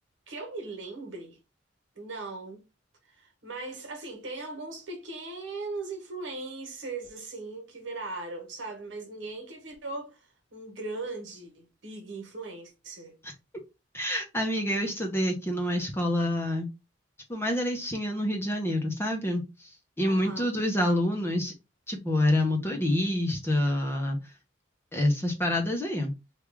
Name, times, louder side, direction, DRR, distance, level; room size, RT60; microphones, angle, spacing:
voice 1, 0.3-1.4 1.9-2.6 3.0-13.2 20.0-20.5, right 3 dB, 80° right, 1.2 m, -39 dB
voice 2, 13.9-16.7 17.3-19.4 20.0-21.5 21.9-24.2 24.9-26.1, left 1 dB, 15° left, 0.7 m, -27 dB
3.1 x 2.4 x 3.4 m
head